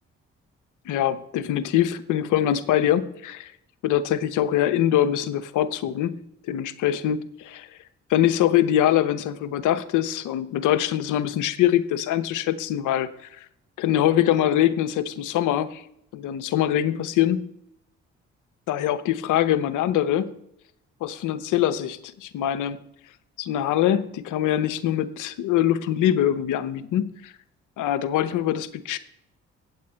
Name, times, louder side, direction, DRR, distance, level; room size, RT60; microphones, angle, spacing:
voice 1, 0.9-3.5 3.8-6.2 6.5-7.7 8.1-13.1 13.4-13.5 13.8-15.8 16.1-17.5 18.7-20.3 21.0-22.8 23.4-27.3 27.8-29.0, left 11 dB, 65° left, 13 dB, 0.8 m, -23 dB
8.4 x 8.1 x 4.3 m, 0.76 s
hypercardioid pair, 40°, 33 cm